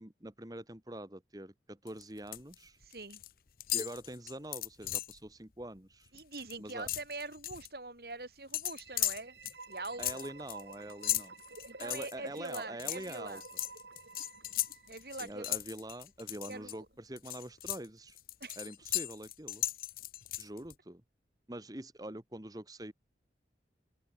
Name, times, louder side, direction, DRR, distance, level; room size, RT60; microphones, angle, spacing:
voice 1, 0.0-2.8 3.7-6.1 6.6-6.9 10.0-11.3 11.8-13.4 15.2-18.2 18.6-19.6 20.4-21.0 21.5-22.9, right 1 dB, 20° right, 1.6 m, -44 dB
sound 1, 1.9-2.5 2.8-3.3 3.6-5.2 5.6-5.8 6.1-7.7 8.5-16.7 17.2-20.7, left 15 dB, 55° left, 0.7 m, -37 dB
voice 2, 2.8-3.2 6.1-9.4 9.7-10.3 11.7-13.4 14.9-15.6 16.5-16.9 18.4-18.6, right 3 dB, 60° right, 4.5 m, -43 dB
sound 2, 8.8-15.5, right 3 dB, 80° right, 3.7 m, -51 dB
open air
head